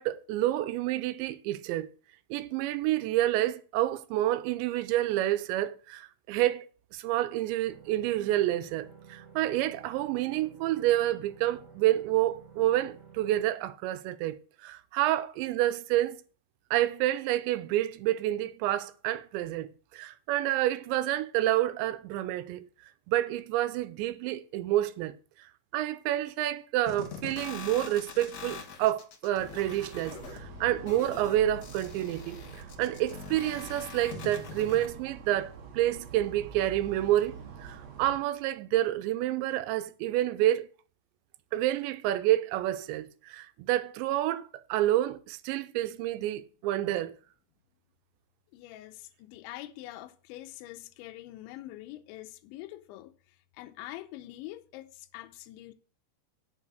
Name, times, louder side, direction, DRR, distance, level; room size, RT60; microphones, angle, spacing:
voice 1, 0.0-1.9 2.3-6.7 6.9-16.2 16.7-22.7 23.1-25.1 25.7-40.7 41.5-47.1, right 14 dB, 80° right, 2.9 m, -29 dB
sound 1, 7.6-13.4, right 7 dB, 40° right, 1.5 m, -53 dB
sound 2, 26.9-34.9, left 6 dB, 55° left, 2.1 m, -43 dB
sound 3, 29.6-38.2, right 6 dB, 60° right, 1.8 m, -46 dB
voice 2, 48.5-55.7, left 15 dB, 85° left, 3.1 m, -45 dB
9.8 x 6.7 x 6.4 m
omnidirectional pair, 5.3 m